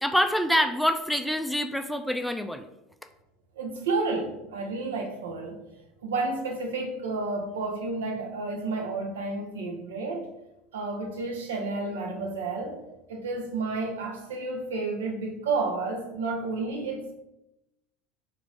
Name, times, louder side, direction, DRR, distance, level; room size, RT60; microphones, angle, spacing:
voice 1, 0.0-2.7, equal, ahead, 0.4 m, -26 dB
voice 2, 3.6-5.6 6.0-10.3 10.7-12.8 13.1-17.1, right 3 dB, 75° right, 0.8 m, -31 dB
3.9 x 2.6 x 4.8 m
figure-of-eight pair, 75°, 0 cm